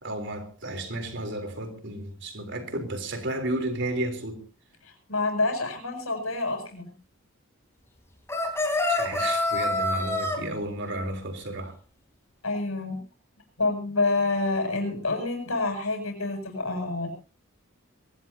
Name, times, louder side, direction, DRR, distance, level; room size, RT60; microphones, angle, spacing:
voice 1, 0.0-4.4 8.9-11.7, right 1 dB, 55° right, 3.7 m, -32 dB
voice 2, 4.8-6.9 12.4-13.0 13.6-17.1, left 3 dB, 75° left, 7.6 m, -28 dB
sound 1, 8.3-10.4, left 2 dB, 10° left, 3.6 m, -26 dB
23.5 x 18.0 x 2.8 m
head